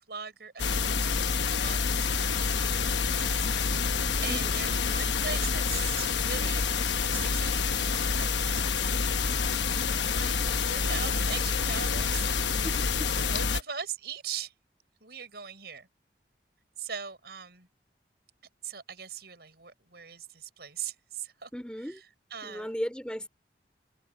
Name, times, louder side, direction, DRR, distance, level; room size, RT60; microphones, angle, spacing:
voice 1, 0.1-1.1 1.5-6.7 7.1-9.1 9.9-12.2 13.2-14.5 15.0-15.9 16.8-17.7 18.6-21.5 22.3-22.7, right 7 dB, 65° right, 5.6 m, -41 dB
sound 1, 0.6-13.6, left 5 dB, 85° left, 1.1 m, -27 dB
voice 2, 4.3-4.6 12.6-13.1 21.5-22.0 22.4-23.3, equal, 5° left, 4.1 m, -36 dB
head